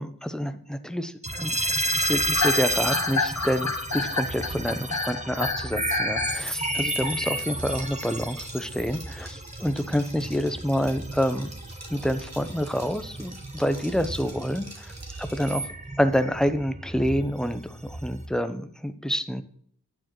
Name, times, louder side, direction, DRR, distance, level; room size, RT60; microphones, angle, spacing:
voice 1, 0.0-11.5 11.9-14.9 15.2-15.7 16.0-19.4, equal, ahead, 10 dB, 0.8 m, -28 dB
sound 1, 1.2-18.3, right 1 dB, 20° right, 1.3 m, -32 dB
sound 2, 2.4-6.4, left 3 dB, 50° left, 1.2 m, -28 dB
Liquid, 6.3-15.7, right 1 dB, 45° right, 2.8 m, -47 dB
12.0 x 9.1 x 3.1 m, 0.62 s
wide cardioid pair, 40°, 36 cm